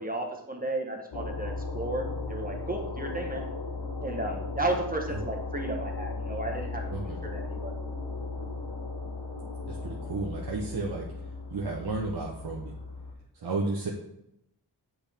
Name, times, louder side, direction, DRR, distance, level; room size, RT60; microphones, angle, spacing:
voice 1, 0.0-3.4 4.0-6.8 7.3-7.7, right 2 dB, 20° right, 2 dB, 1.2 m, -33 dB
sound 1, 1.1-13.1, left 3 dB, 75° left, 1.1 m, -36 dB
voice 2, 6.9-7.2 9.7-11.1 11.5-12.8 13.3-13.9, right 3 dB, 70° right, -2 dB, 1.0 m, -33 dB
7.9 x 4.5 x 3.5 m, 0.81 s
wide cardioid pair, 75°, 41 cm